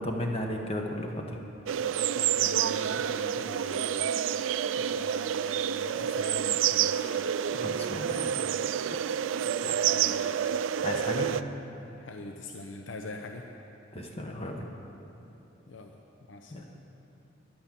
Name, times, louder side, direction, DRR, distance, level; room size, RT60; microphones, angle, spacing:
voice 1, 0.0-1.4 7.5-8.3 10.8-11.4 13.9-14.7 16.5-16.6, left 1 dB, 30° left, 2 dB, 1.3 m, -34 dB
sound 1, 1.7-11.4, right 9 dB, 80° right, 0.3 m, -28 dB
voice 2, 2.0-4.2 4.8-7.1 9.4-10.6 12.0-13.4 15.7-16.0 16.3-16.7, left 2 dB, 75° left, 3 dB, 0.7 m, -43 dB
10.5 x 9.8 x 7.6 m, 2.9 s
head